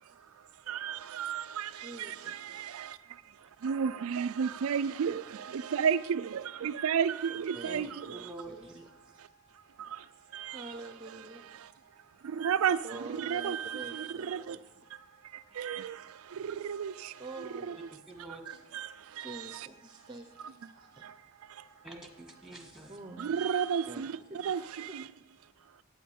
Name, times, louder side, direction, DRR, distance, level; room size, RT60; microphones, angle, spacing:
voice 1, 0.7-8.3 9.2-9.3 9.8-10.1 10.3-10.7 11.5-11.7 12.2-14.6 15.2-17.2 17.7-17.8 18.5-19.7 21.0-21.2 21.4-21.6 23.2-25.1, right 7 dB, 75° right, 0.4 m, -33 dB
voice 2, 1.7-2.8 4.8-4.9 5.5-5.8 7.5-9.2 10.5-11.5 12.8-14.6 17.2-17.8 18.5-18.6 19.1-21.0 22.9-23.3 23.9-24.0 24.3-25.0, right 2 dB, 20° right, 0.7 m, -47 dB
sound 1, 5.7-24.8, right 5 dB, 45° left, 5.1 m, -64 dB
voice 3, 7.6-8.8 18.1-18.4 21.8-22.9, right 2 dB, ahead, 1.6 m, -46 dB
10.5 x 9.2 x 8.4 m
head